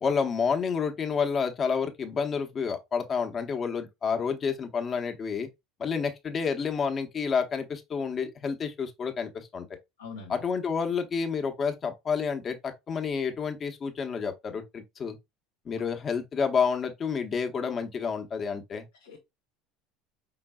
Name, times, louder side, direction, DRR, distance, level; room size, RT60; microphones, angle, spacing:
voice 1, 0.0-5.5 5.8-9.7 10.3-15.2 15.6-18.8, left 6 dB, 35° left, 1.0 m, -29 dB
voice 2, 10.0-10.4 15.7-15.8 19.0-19.2, left 4 dB, 85° left, 1.1 m, -43 dB
5.2 x 3.8 x 2.2 m
hypercardioid pair, 75°, 0 cm